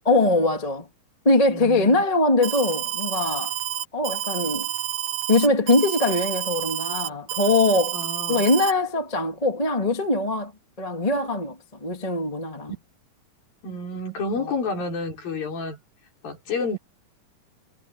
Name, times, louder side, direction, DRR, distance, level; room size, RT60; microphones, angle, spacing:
voice 1, 0.1-0.9 1.2-3.5 3.9-4.7 5.3-8.0 8.3-10.5 10.8-12.7 14.4-14.5, left 2 dB, 15° left, 1.8 m, -22 dB
voice 2, 1.5-2.0 7.9-8.4 13.6-15.8 16.2-16.8, left 3 dB, 80° left, 6.8 m, -30 dB
Alarm, 2.4-8.7, right 13 dB, 75° right, 2.5 m, -29 dB
omnidirectional pair, 4.0 m